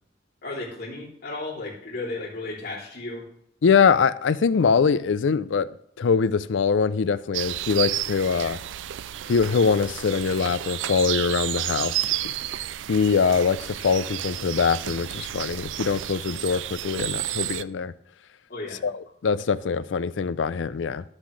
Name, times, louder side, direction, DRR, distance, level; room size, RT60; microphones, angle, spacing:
voice 1, 0.4-3.3 18.5-18.9, left 2 dB, 55° left, 3.1 m, -34 dB
voice 2, 3.6-5.7 6.0-8.6 9.3-12.3 12.9-17.9 18.8-21.1, left 5 dB, 80° left, 0.4 m, -23 dB
sound 1, 7.3-17.6, right 13 dB, 80° right, 0.3 m, -31 dB
11.5 x 7.3 x 3.2 m
head